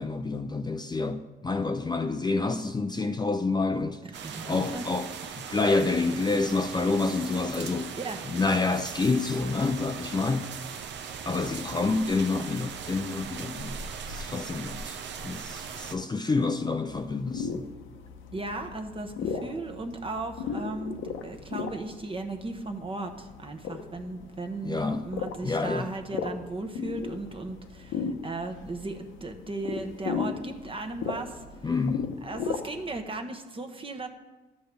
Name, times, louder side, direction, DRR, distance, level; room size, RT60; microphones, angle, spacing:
voice 1, 0.0-4.0 4.5-5.1 5.4-7.9 8.3-10.5 11.3-13.8 14.1-15.0 15.2-17.7 24.6-25.1 25.4-25.9 31.6-32.1, left 3 dB, 20° left, 0.5 m, -28 dB
sound 1, 4.1-15.9, right 6 dB, 65° right, 0.8 m, -39 dB
voice 2, 4.2-4.8 5.5-5.6 7.9-8.2 18.3-21.0 21.2-31.4 32.2-34.1, right 2 dB, 25° right, 1.2 m, -36 dB
sound 2, 16.9-33.0, left 6 dB, 80° left, 1.0 m, -37 dB
13.0 x 7.7 x 3.4 m
cardioid pair, 90°, 20 cm